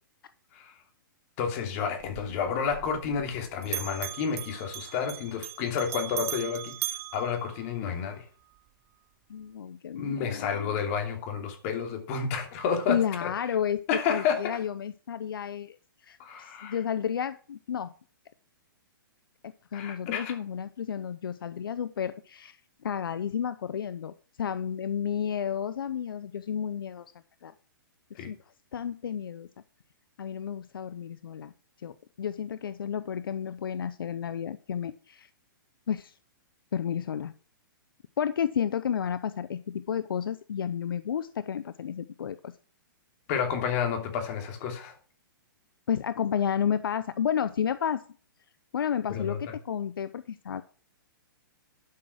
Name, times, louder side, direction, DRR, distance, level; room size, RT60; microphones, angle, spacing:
voice 1, 1.4-8.2 9.9-13.3 13.9-14.6 16.2-16.8 19.7-20.3 28.2-28.3 43.3-44.9 49.1-49.5, left 6 dB, 40° left, 3.0 m, -30 dB
Bell, 2.0-3.4 3.6-8.1, right 13 dB, 25° right, 0.6 m, -38 dB
voice 2, 9.3-10.8 12.9-13.8 14.1-15.8 16.0-17.9 19.7-22.6 22.8-27.1 27.4-27.5 28.1-28.4 28.7-29.5 30.2-31.5 31.8-35.3 35.9-36.1 36.7-37.3 38.2-42.5 45.9-48.0 48.7-50.6, left 8 dB, 80° left, 0.6 m, -31 dB
11.5 x 6.3 x 6.2 m
hypercardioid pair, 135°, 12 cm